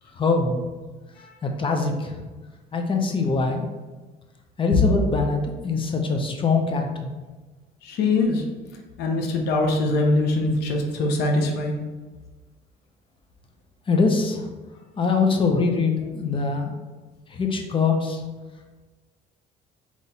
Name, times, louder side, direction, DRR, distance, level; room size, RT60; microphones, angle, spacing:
voice 1, 0.1-0.6 1.4-2.2 2.7-3.7 4.6-7.2 13.9-14.5 15.0-16.7 17.3-18.2, left 4 dB, 30° left, 3 dB, 0.7 m, -23 dB
voice 2, 7.8-8.4 9.0-11.8, left 2 dB, 80° left, 2 dB, 0.8 m, -23 dB
3.9 x 3.1 x 4.1 m, 1.3 s
cardioid pair, 110°, 17 cm